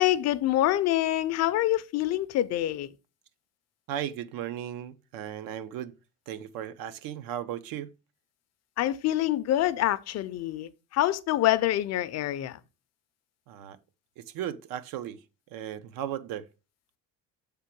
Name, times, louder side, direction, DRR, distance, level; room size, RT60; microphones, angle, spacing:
voice 1, 0.0-2.9 8.8-12.6, left 14 dB, 50° left, 0.4 m, -26 dB
voice 2, 3.9-5.9 6.3-7.9 13.5-13.8 14.2-15.2 15.5-16.4, right 10 dB, 80° right, 0.7 m, -36 dB
6.7 x 3.7 x 4.4 m
cardioid pair, 145°, 33 cm